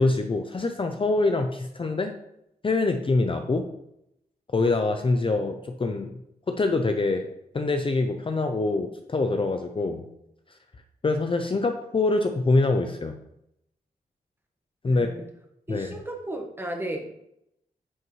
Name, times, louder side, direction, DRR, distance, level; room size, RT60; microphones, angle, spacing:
voice 1, 0.0-2.1 2.6-3.7 4.5-6.2 6.5-7.3 7.5-10.0 11.0-13.2 14.8-15.1 15.7-15.9, left 3 dB, 35° left, 6 dB, 0.6 m, -24 dB
voice 2, 14.9-15.2 15.7-17.1, right 1 dB, 15° right, 2 dB, 1.3 m, -34 dB
9.3 x 5.4 x 3.1 m, 0.79 s
wide cardioid pair, 125°, 16 cm